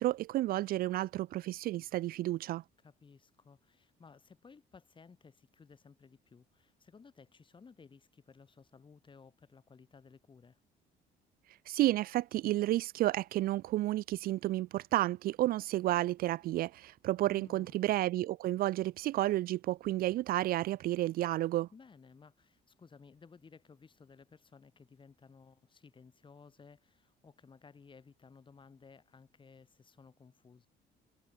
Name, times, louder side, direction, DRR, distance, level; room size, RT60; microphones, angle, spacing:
voice 1, 0.0-2.6 11.7-21.7, right 15 dB, 60° right, 0.4 m, -31 dB
voice 2, 2.8-10.6 17.3-17.8 21.7-30.7, left 5 dB, 30° left, 6.1 m, -58 dB
cardioid pair, 110°, 17 cm